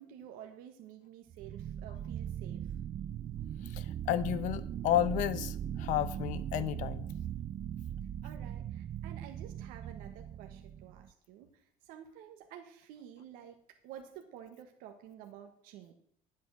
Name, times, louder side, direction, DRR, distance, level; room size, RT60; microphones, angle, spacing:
voice 1, 0.0-2.7 8.2-13.6 13.8-15.9, right 9 dB, 80° right, 4 dB, 1.4 m, -51 dB
sound 1, 1.3-11.1, right 10 dB, 30° right, 0.3 m, -39 dB
voice 2, 3.7-7.1, left 12 dB, 60° left, 15 dB, 0.9 m, -32 dB
11.0 x 8.2 x 6.3 m, 0.66 s
cardioid pair, 160°, 15 cm